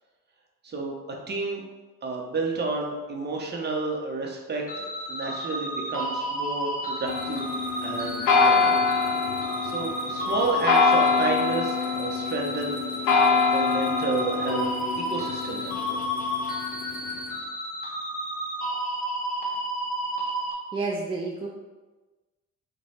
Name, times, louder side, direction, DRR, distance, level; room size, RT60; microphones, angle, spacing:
voice 1, 0.6-0.9 1.3-1.6 2.0-8.8 9.6-14.7 15.1-16.0, right 3 dB, 35° right, 0 dB, 0.7 m, -31 dB
sound 1, 4.7-20.5, equal, 30° left, 0.8 m, -32 dB
sound 2, 7.1-17.2, left 4 dB, 85° left, 0.5 m, -25 dB
voice 2, 20.7-21.5, right 3 dB, 20° right, -2 dB, 0.4 m, -29 dB
3.0 x 2.2 x 4.2 m, 1.2 s
cardioid pair, 90°, 30 cm